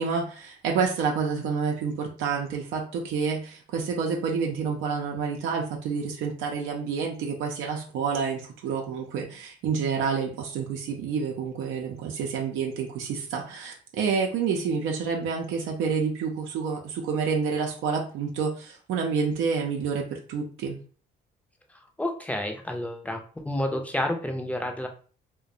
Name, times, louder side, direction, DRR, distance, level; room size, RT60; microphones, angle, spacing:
voice 1, 0.0-20.8, right 5 dB, 90° right, 1 dB, 0.5 m, -28 dB
voice 2, 21.7-24.9, left 1 dB, 5° left, 3 dB, 0.4 m, -30 dB
2.4 x 2.1 x 2.6 m, 0.40 s
cardioid pair, 90°, 20 cm